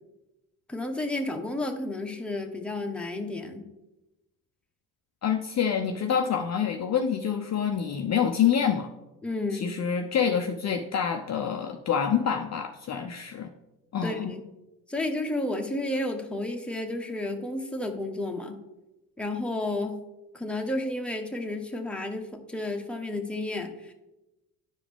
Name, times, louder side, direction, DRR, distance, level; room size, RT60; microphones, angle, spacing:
voice 1, 0.7-3.7 9.2-9.7 14.0-14.4 14.9-18.6 19.2-20.0 20.3-23.9, left 2 dB, 5° left, 2 dB, 1.2 m, -31 dB
voice 2, 5.2-8.9 9.5-13.5 13.9-14.3, left 8 dB, 40° left, 5 dB, 0.6 m, -27 dB
10.0 x 4.8 x 3.5 m, 0.98 s
hypercardioid pair, 65°, 43 cm